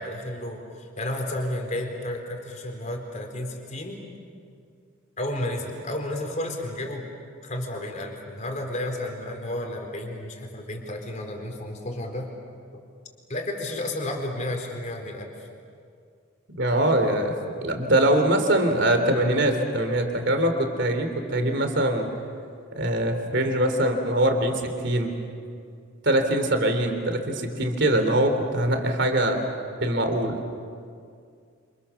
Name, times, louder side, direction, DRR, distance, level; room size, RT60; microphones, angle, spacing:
voice 1, 0.0-4.0 5.2-7.1 7.4-12.3 13.3-15.5, left 1 dB, 35° left, 2 dB, 4.1 m, -32 dB
voice 2, 16.6-22.1 22.8-25.2 26.0-29.4 29.8-30.4, right 1 dB, 60° right, 5 dB, 3.4 m, -23 dB
28.5 x 28.0 x 7.1 m, 2.2 s
head